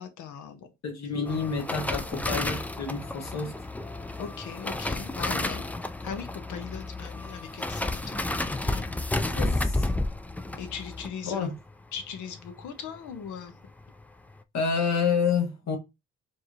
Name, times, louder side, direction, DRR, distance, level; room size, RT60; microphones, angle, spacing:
voice 1, 0.0-0.7 4.2-5.6 6.0-8.2 8.6-8.9 10.5-11.5 11.9-13.6, left 7 dB, 75° left, 0.9 m, -39 dB
voice 2, 0.8-3.5 9.4-9.9 11.2-11.5 14.5-15.8, left 5 dB, 60° left, 1.3 m, -28 dB
sound 1, 1.3-12.7 12.9-13.3 13.6-14.0 14.3-14.4, left 2 dB, 5° left, 0.3 m, -32 dB
4.5 x 2.7 x 3.1 m
cardioid pair, 90°, 30 cm